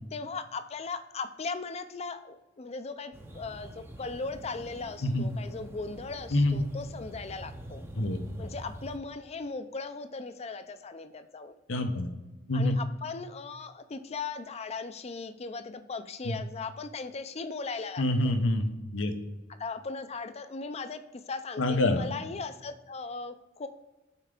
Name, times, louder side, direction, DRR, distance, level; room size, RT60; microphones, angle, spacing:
voice 1, 0.1-7.8 8.4-11.5 12.5-18.4 19.6-21.0 21.3-23.7, left 4 dB, 35° left, 10 dB, 0.5 m, -38 dB
sound 1, 3.1-9.0, right 1 dB, 15° right, 0.6 m, -45 dB
voice 2, 11.7-12.1 12.5-12.8 16.2-16.4 18.0-19.1 21.6-22.1, left 1 dB, 80° left, 7 dB, 0.8 m, -26 dB
5.7 x 4.5 x 4.9 m, 1.1 s
head